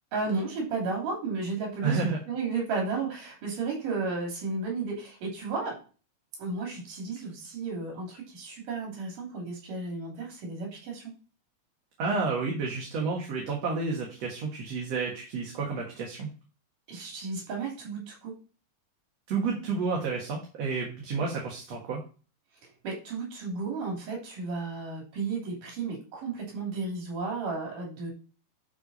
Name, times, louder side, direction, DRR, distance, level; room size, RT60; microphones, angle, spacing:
voice 1, 0.1-5.8 6.4-11.1 16.9-18.3 21.2-21.3 22.8-28.1, right 4 dB, 85° right, -1 dB, 4.6 m, -33 dB
voice 2, 1.8-2.2 12.0-16.3 19.3-22.0, right 4 dB, 55° right, -2 dB, 2.7 m, -30 dB
11.5 x 4.7 x 4.2 m, 0.36 s
omnidirectional pair, 3.6 m